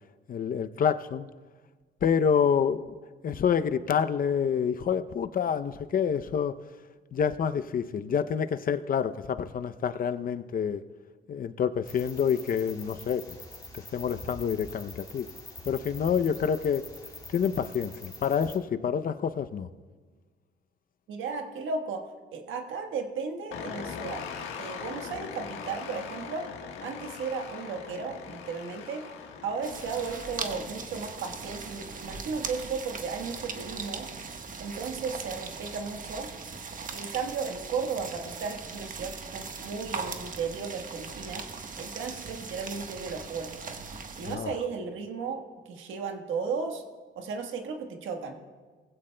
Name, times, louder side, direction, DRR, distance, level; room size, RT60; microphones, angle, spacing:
voice 1, 0.3-1.3 2.0-2.8 3.2-6.6 7.1-10.8 11.3-13.4 13.7-15.3 15.7-16.8 17.3-19.7 44.2-44.5, left 7 dB, 45° left, 11 dB, 0.6 m, -27 dB
sound 1, 11.8-18.6, left 2 dB, 20° left, 2.3 m, -45 dB
voice 2, 21.1-22.0 22.3-24.3 24.6-26.5 26.8-29.0 29.4-34.1 34.6-36.3 36.9-41.5 41.8-43.8 44.1-46.8 47.2-48.4, right 5 dB, 80° right, 4 dB, 1.4 m, -35 dB
sound 2, 23.5-32.2, left 6 dB, 85° left, 1.4 m, -41 dB
sound 3, 29.6-44.4, right 4 dB, 40° right, 1.3 m, -39 dB
19.5 x 15.5 x 2.2 m, 1.4 s
cardioid pair, 90°, 20 cm